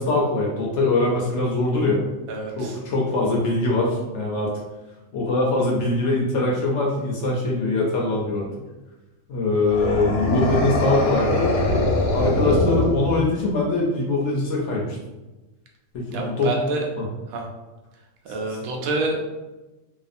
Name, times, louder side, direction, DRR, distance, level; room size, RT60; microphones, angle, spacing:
voice 1, 0.0-2.0 2.6-4.5 5.1-8.4 9.3-11.5 12.1-15.0 15.9-16.5 17.0-17.1, left 2 dB, 65° left, -2 dB, 0.7 m, -22 dB
voice 2, 2.3-2.8 16.1-16.9 17.3-17.5 18.2-19.2, right 2 dB, 80° right, 0 dB, 1.0 m, -27 dB
sound 1, 9.7-13.5, left 2 dB, 90° left, 1.1 m, -22 dB
2.6 x 2.3 x 2.5 m, 1.1 s
omnidirectional pair, 1.5 m